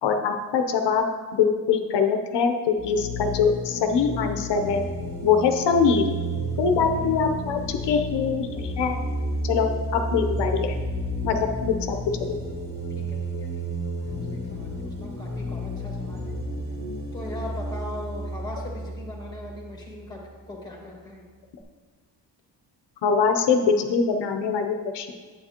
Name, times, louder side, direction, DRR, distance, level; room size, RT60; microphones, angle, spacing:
voice 1, 0.0-1.0 1.3-4.8 5.2-6.0 6.6-9.0 9.4-10.7 11.2-12.0 23.0-25.1, left 6 dB, 70° left, 5 dB, 0.8 m, -23 dB
sound 1, 2.8-20.2, equal, 30° right, 1.8 m, -31 dB
voice 2, 12.9-16.4 17.1-21.3, left 1 dB, 10° left, -1 dB, 1.5 m, -40 dB
9.1 x 8.4 x 2.9 m, 1.5 s
cardioid pair, 155°, 43 cm